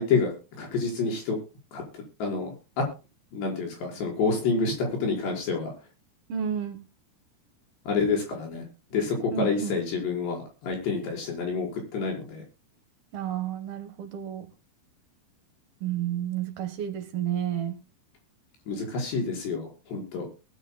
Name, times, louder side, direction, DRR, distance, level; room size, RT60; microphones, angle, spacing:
voice 1, 0.0-1.4 1.7-2.5 2.8-2.9 3.3-5.7 7.9-8.6 8.9-12.4 18.7-20.2, left 4 dB, 80° left, 7.2 m, -28 dB
voice 2, 6.3-6.8 9.3-9.8 13.1-14.5 15.8-17.8, right 10 dB, 65° right, 3.1 m, -31 dB
20.0 x 12.0 x 2.3 m
omnidirectional pair, 4.9 m